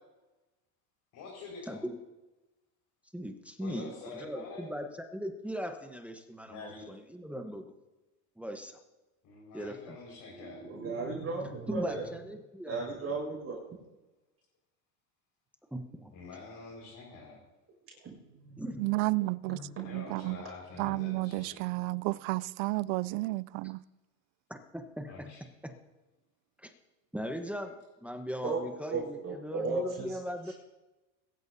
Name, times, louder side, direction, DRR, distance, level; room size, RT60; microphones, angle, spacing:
voice 1, 1.1-1.8 3.6-4.7 6.5-6.8 9.2-10.6 16.1-17.4 19.8-21.6 25.1-25.4, left 4 dB, 50° left, 5.3 m, -46 dB
voice 2, 1.7-2.0 3.1-7.7 8.4-8.8 9.5-10.0 11.7-12.8 15.7-16.1 18.6-18.9 24.5-25.3 25.6-25.8 26.6-26.7 27.1-27.7 28.0-30.5, equal, 5° right, 1.1 m, -39 dB
voice 3, 10.3-12.1 12.6-13.7 18.3-18.7 19.4-19.9 20.9-21.0 28.4-30.2, right 3 dB, 35° right, 6.1 m, -36 dB
voice 4, 18.8-20.4 20.8-23.8, right 22 dB, 70° right, 0.6 m, -32 dB
22.5 x 13.0 x 2.8 m
supercardioid pair, 110°, 42 cm